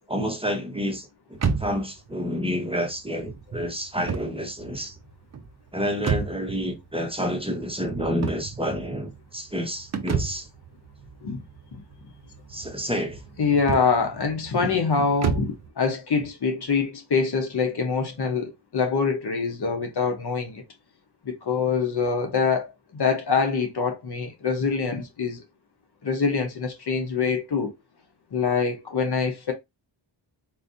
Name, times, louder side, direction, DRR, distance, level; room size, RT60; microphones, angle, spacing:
voice 1, 0.1-5.0 5.7-10.5 12.5-13.2, equal, 10° right, 0.9 m, -29 dB
sound 1, 1.3-15.7, right 6 dB, 35° right, 0.6 m, -33 dB
voice 2, 13.4-20.6 21.2-25.4 26.0-27.7 28.3-29.5, left 5 dB, 55° left, 0.9 m, -25 dB
4.1 x 2.5 x 2.5 m
cardioid pair, 70°, 47 cm